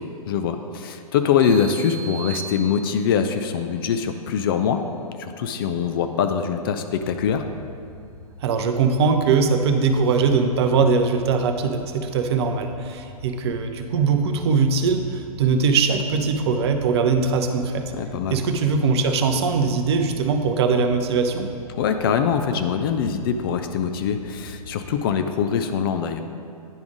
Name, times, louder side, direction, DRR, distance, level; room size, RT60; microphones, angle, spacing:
voice 1, 0.0-4.8 5.2-7.5 17.9-18.4 21.7-26.2, left 7 dB, 40° left, 7 dB, 0.4 m, -23 dB
sound 1, 1.4-3.3, right 7 dB, 20° right, 0.8 m, -37 dB
sound 2, 6.9-25.0, left 1 dB, 85° left, 1.2 m, -44 dB
voice 2, 8.4-17.9 18.3-21.5, right 5 dB, 45° right, 6 dB, 0.6 m, -21 dB
9.8 x 3.5 x 5.0 m, 2.4 s
figure-of-eight pair, 110°, 19 cm